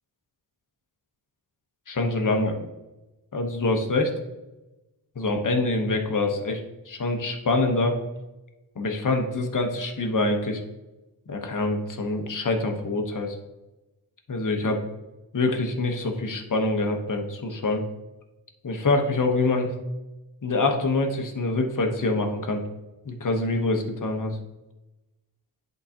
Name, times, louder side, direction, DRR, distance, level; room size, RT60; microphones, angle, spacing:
voice 1, 1.9-2.7 3.3-4.1 5.2-7.9 8.8-10.6 11.3-13.4 14.3-14.8 15.3-17.8 18.6-19.7 20.4-22.6 23.0-24.4, left 2 dB, 40° left, 3 dB, 1.0 m, -25 dB
11.0 x 3.9 x 2.8 m, 1.0 s
wide cardioid pair, 105°, 47 cm